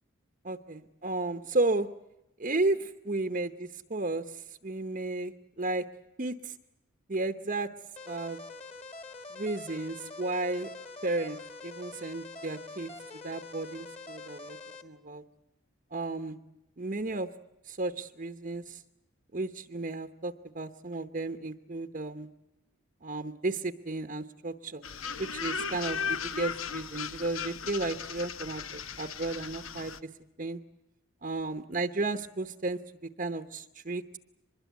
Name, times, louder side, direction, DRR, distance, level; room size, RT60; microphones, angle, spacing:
voice 1, 0.4-1.9 2.4-5.8 6.2-6.6 7.1-7.7 8.1-8.4 9.3-10.7 11.0-12.9 13.2-14.6 14.8-15.2 15.9-16.4 16.8-17.3 17.6-18.8 19.3-22.3 23.0-24.8 25.2-30.1 30.4-30.6 31.2-34.2, right 2 dB, 40° right, 8 dB, 0.8 m, -33 dB
sound 1, 8.0-14.8, left 3 dB, 30° left, 1.8 m, -45 dB
sound 2, 24.8-30.0, left 6 dB, 80° left, 1.0 m, -36 dB
24.5 x 21.5 x 8.1 m, 0.90 s
head